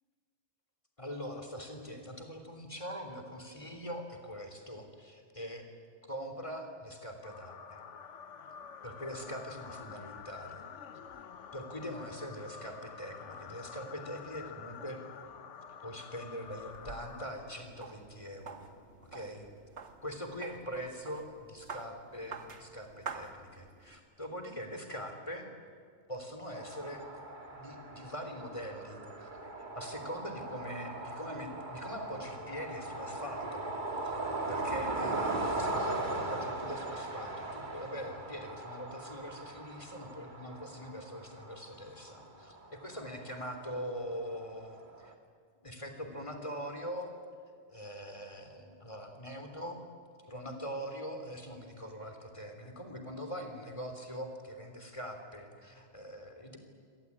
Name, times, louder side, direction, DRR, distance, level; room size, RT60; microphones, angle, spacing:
voice 1, 1.0-5.7 6.0-7.8 8.8-10.7 11.5-15.0 15.8-18.6 19.1-19.5 20.0-25.5 26.1-27.2 27.5-33.7 34.0-45.1 45.6-47.1 47.7-49.8 50.3-56.6, equal, 25° left, 5 dB, 3.6 m, -42 dB
sound 1, 7.2-18.0, left 7 dB, 80° left, 1.3 m, -49 dB
sound 2, 16.4-24.0, right 5 dB, 70° right, 1.8 m, -48 dB
sound 3, 26.5-45.1, right 2 dB, 40° right, 2.1 m, -39 dB
27.0 x 18.0 x 9.8 m, 2.2 s
omnidirectional pair, 1.2 m